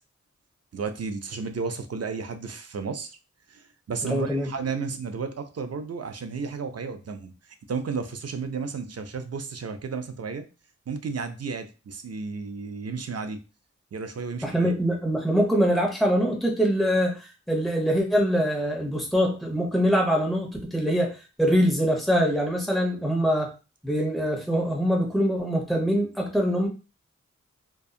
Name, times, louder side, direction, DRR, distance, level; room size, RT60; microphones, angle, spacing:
voice 1, 0.7-3.2 3.5-10.5 10.9-13.4 13.9-14.7, right 5 dB, 60° right, 7 dB, 0.5 m, -33 dB
voice 2, 4.1-4.5 14.4-17.2 17.5-23.5 23.8-26.7, equal, ahead, -1 dB, 1.0 m, -23 dB
2.6 x 2.3 x 2.4 m, 0.31 s
cardioid pair, 45°, 29 cm